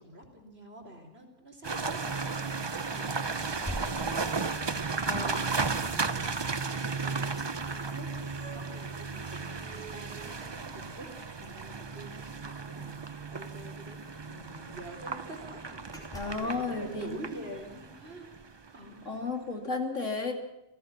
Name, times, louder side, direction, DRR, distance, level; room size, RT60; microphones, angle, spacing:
voice 1, 0.0-18.3 18.7-19.2, right 1 dB, 55° right, 3 dB, 4.5 m, -47 dB
sound 1, 1.6-18.8, right 4 dB, 25° right, 0.6 m, -35 dB
sound 2, 1.7-2.4 2.9-3.1 3.6-4.8 7.4-7.5 7.8-8.9 9.3-11.1 11.4-11.5 11.9-12.1 13.2-13.3 13.5-13.6 14.0-14.9 15.4-15.5 15.9-16.5, right 1 dB, 5° left, 3.8 m, -46 dB
voice 2, 5.1-5.6 16.1-17.2 19.0-20.3, left 3 dB, 85° left, 4 dB, 3.1 m, -33 dB
29.0 x 16.5 x 5.9 m, 0.93 s
omnidirectional pair, 1.3 m